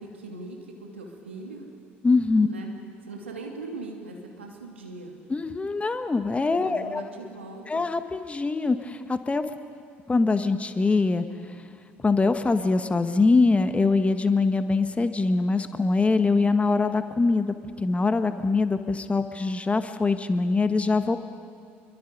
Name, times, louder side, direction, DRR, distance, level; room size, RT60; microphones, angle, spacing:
voice 1, 0.0-1.7 2.4-2.7 3.0-5.2 6.7-7.8, right 3 dB, 85° right, 1 dB, 2.8 m, -40 dB
voice 2, 2.0-2.5 5.3-7.0 7.7-9.4 10.1-11.6 12.0-21.2, left 3 dB, 20° left, 9 dB, 1.5 m, -23 dB
27.5 x 23.0 x 5.4 m, 2.3 s
figure-of-eight pair, 60°, 6 cm